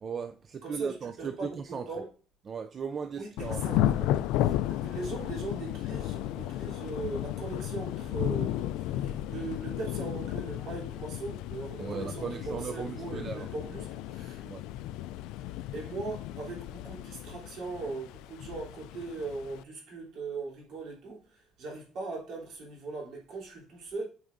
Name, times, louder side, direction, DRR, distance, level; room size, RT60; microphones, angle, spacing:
voice 1, 0.0-1.9 2.5-3.8 11.8-13.5 14.4-14.6, right 6 dB, 30° right, 0.4 m, -37 dB
voice 2, 0.6-2.1 3.1-14.5 15.4-24.0, right 3 dB, 55° right, 3.3 m, -40 dB
Thunder / Rain, 3.4-19.6, left 13 dB, 85° left, 0.3 m, -34 dB
9.0 x 4.8 x 2.6 m
cardioid pair, 145°, 0 cm